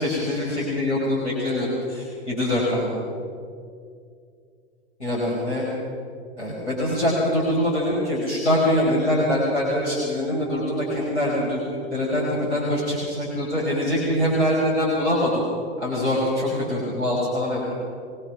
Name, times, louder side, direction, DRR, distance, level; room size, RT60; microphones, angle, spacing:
voice 1, 0.0-2.9 5.0-5.6 6.4-11.6 11.9-15.4 15.8-17.7, left 1 dB, 85° left, -5 dB, 5.1 m, -23 dB
23.5 x 19.0 x 6.0 m, 2.3 s
figure-of-eight pair, 95°, 33 cm